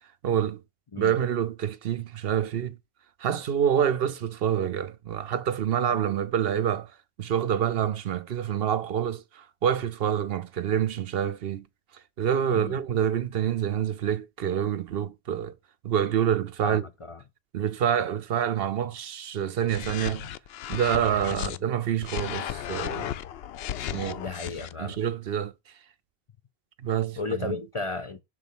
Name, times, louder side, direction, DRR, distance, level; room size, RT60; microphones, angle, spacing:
voice 1, 0.2-0.6 1.0-2.8 3.2-6.9 7.2-11.7 12.2-15.5 15.8-16.8 17.5-20.3 20.7-23.1 23.9-24.2 24.8-25.5 26.8-27.6, right 9 dB, 65° right, 0.8 m, -27 dB
voice 2, 16.6-17.2 21.3-21.5 24.2-25.0 27.2-28.2, left 4 dB, 35° left, 0.7 m, -34 dB
sound 1, 19.7-21.6 22.0-24.7, left 11 dB, 70° left, 0.8 m, -34 dB
6.6 x 3.9 x 6.0 m
omnidirectional pair, 1.1 m